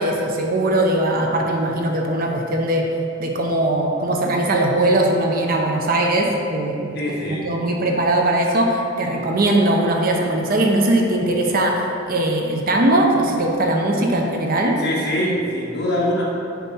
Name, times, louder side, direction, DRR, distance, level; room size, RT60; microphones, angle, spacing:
voice 1, 0.0-2.9 3.2-7.0 7.3-14.8, right 1 dB, 45° right, 1 dB, 0.7 m, -20 dB
voice 2, 6.9-7.5 14.8-16.3, equal, 55° left, -5 dB, 1.5 m, -23 dB
7.1 x 4.3 x 4.3 m, 2.6 s
head